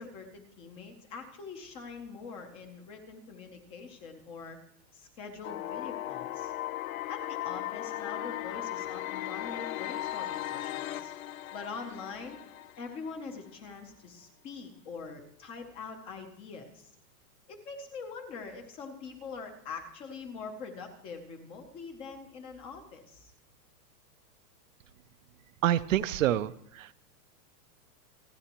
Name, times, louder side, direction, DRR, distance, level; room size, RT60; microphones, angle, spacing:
voice 1, 0.0-4.6 4.9-6.5 7.1-11.1 11.5-12.4 12.8-16.9 17.5-23.3, left 4 dB, 10° left, 5 dB, 0.6 m, -43 dB
sound 1, 5.4-13.4, left 13 dB, 55° left, 0.7 m, -37 dB
voice 2, 25.6-26.5 26.8-26.9, right 12 dB, 55° right, 14 dB, 0.6 m, -26 dB
28.0 x 9.9 x 2.9 m, 0.76 s
supercardioid pair, 170°, 49 cm